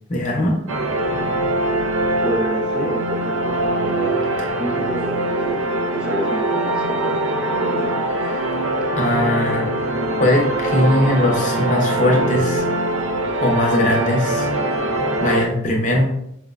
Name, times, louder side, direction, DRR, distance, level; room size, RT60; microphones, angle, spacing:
voice 1, 0.1-0.6 8.2-8.5 9.0-9.7 10.2-12.7 13.4-14.5 14.9-16.1, left 1 dB, 40° left, 0 dB, 0.6 m, -20 dB
sound 1, 0.7-15.5, right 1 dB, 90° right, 0.4 m, -22 dB
voice 2, 2.2-4.2 4.6-7.9, right 1 dB, 5° right, -1 dB, 0.4 m, -30 dB
4.4 x 2.0 x 2.3 m, 0.75 s
head